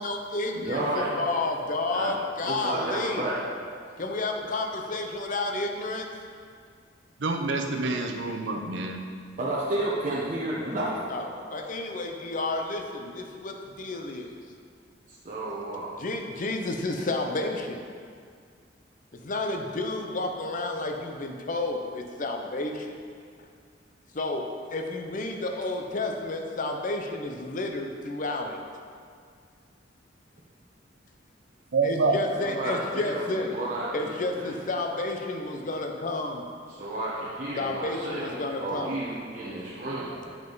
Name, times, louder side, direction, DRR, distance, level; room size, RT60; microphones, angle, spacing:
voice 1, 0.0-3.2 4.0-6.1 11.1-14.4 16.0-17.8 19.1-23.0 23.4-23.5 24.1-28.6 31.8-33.5 33.9-36.4 37.6-38.9 39.5-39.8 40.0-40.3, left 2 dB, 45° left, 3 dB, 0.6 m, -31 dB
voice 2, 0.5-1.1 1.9-2.1 2.4-3.4 9.4-11.0 15.1-15.9 32.4-34.1 34.4-34.6 36.8-38.3 38.6-40.1, right 1 dB, 45° right, -8 dB, 0.9 m, -31 dB
voice 3, 7.2-9.0 31.7-32.2, right 3 dB, 75° right, 3 dB, 0.7 m, -27 dB
7.4 x 5.4 x 3.9 m, 2.1 s
head